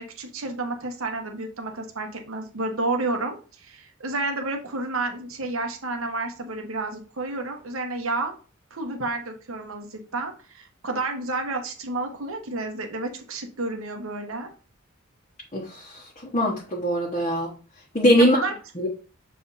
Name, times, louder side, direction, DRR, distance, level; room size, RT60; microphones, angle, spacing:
voice 1, 0.0-8.3 8.7-14.5 18.2-18.5, right 2 dB, 85° right, 4 dB, 1.3 m, -30 dB
voice 2, 15.5-16.0 16.3-17.5 17.9-18.4 18.8-18.9, equal, 30° left, -3 dB, 1.2 m, -21 dB
6.8 x 3.4 x 4.1 m, 0.38 s
head